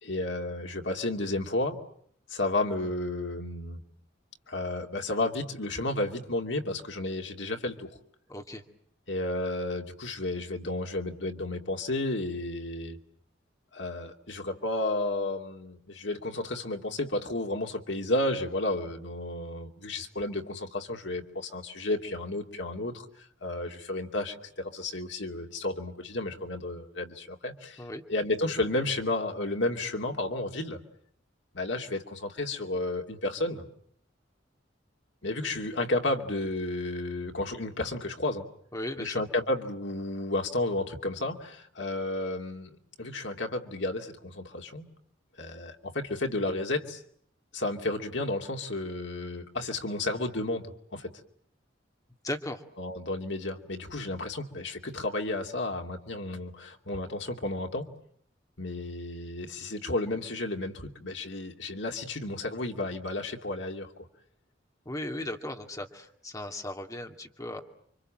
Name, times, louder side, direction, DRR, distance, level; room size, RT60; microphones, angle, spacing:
voice 1, 0.0-1.8 2.3-3.8 4.5-8.0 9.1-13.0 13.7-23.1 23.4-27.8 28.1-30.8 31.5-33.6 35.2-38.5 39.0-44.9 45.4-47.0 47.5-51.1 52.8-57.9 58.6-64.1, left 2 dB, 70° left, 3 dB, 2.6 m, -32 dB
voice 2, 8.3-8.6 27.8-28.0 38.7-39.2 52.2-52.6 64.9-67.6, left 1 dB, 20° left, 4 dB, 2.3 m, -37 dB
29.5 x 25.0 x 7.6 m, 0.64 s
head